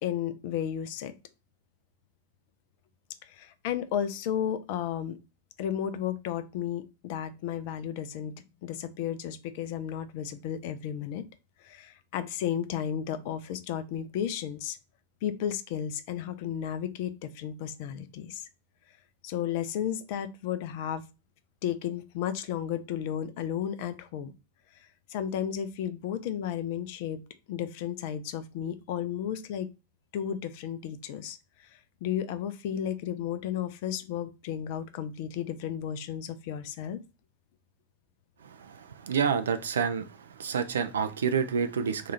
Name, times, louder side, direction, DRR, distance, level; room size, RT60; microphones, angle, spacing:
voice 1, 0.0-1.1 3.2-5.2 5.6-8.3 8.6-11.2 11.6-14.8 15.2-18.5 19.2-21.0 21.6-24.3 25.1-27.2 27.5-29.7 30.1-37.0, left 9 dB, 50° left, 0.4 m, -33 dB
voice 2, 38.4-40.0 40.4-42.1, right 6 dB, 65° right, 0.4 m, -28 dB
2.8 x 2.3 x 4.1 m
figure-of-eight pair, 90°, 0 cm